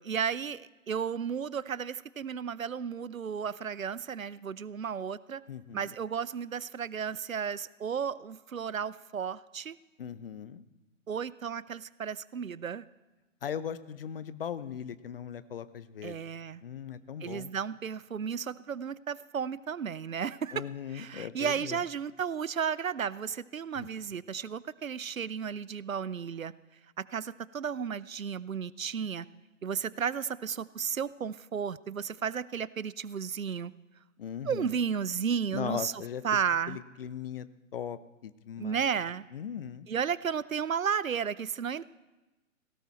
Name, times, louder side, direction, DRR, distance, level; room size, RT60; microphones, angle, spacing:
voice 1, 0.0-5.4 5.7-9.8 11.1-12.8 16.0-16.6 17.2-20.7 20.9-26.5 27.0-29.3 29.6-33.7 34.4-36.8 38.6-39.3 39.9-41.8, right 7 dB, 75° right, 19 dB, 0.7 m, -33 dB
voice 2, 5.5-5.9 10.0-10.6 13.4-16.2 16.6-17.5 20.5-21.8 23.8-23.9 34.2-34.7 35.5-36.2 36.7-37.5 37.7-38.8 39.3-39.9, left 8 dB, 45° left, 15 dB, 0.8 m, -39 dB
18.5 x 17.0 x 4.3 m, 1.1 s
figure-of-eight pair, 125°, 40 cm